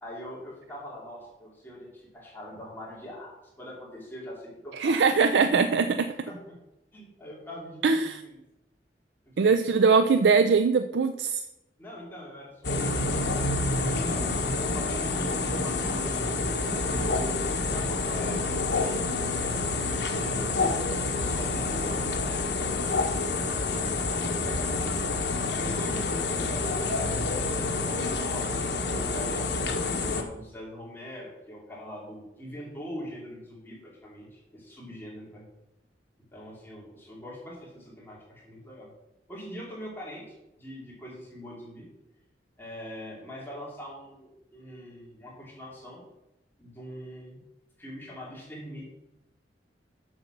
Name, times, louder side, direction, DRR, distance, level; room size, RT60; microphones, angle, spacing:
voice 1, 0.0-3.3 3.6-5.0 6.3-6.6 6.9-8.4 9.4-9.8 11.8-13.6 13.8-14.2 14.7-16.6 16.8-24.9 25.3-28.6 28.9-35.4 36.3-38.9 39.3-40.2 40.6-41.9 42.6-46.0 46.6-47.4 47.8-48.8, equal, 10° left, -4 dB, 2.6 m, -42 dB
voice 2, 4.7-6.1 7.8-8.2 9.4-11.4, right 5 dB, 75° right, 10 dB, 0.4 m, -22 dB
sound 1, 12.6-30.2, left 3 dB, 70° left, 1.2 m, -28 dB
7.8 x 6.7 x 5.9 m, 0.92 s
head